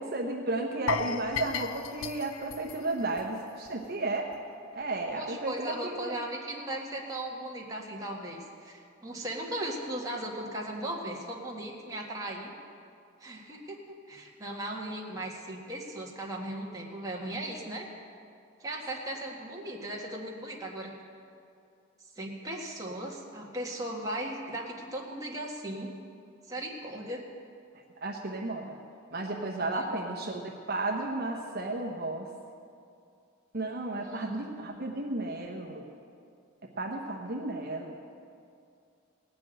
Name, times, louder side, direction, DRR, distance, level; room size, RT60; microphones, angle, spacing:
voice 1, 0.0-4.3 4.7-6.1 27.7-28.8 29.1-32.3 33.5-35.8 36.8-37.9, right 2 dB, 50° right, 0 dB, 1.0 m, -33 dB
sound 1, 0.9-3.9 4.1-4.3 4.8-4.9, left 6 dB, 85° left, 0.5 m, -36 dB
voice 2, 5.2-12.5 13.2-13.8 14.1-17.9 18.6-20.9 22.2-25.9 26.5-27.2 29.6-30.1 34.0-34.5, right 1 dB, 15° right, -2 dB, 1.7 m, -37 dB
18.0 x 6.1 x 9.0 m, 2.4 s
head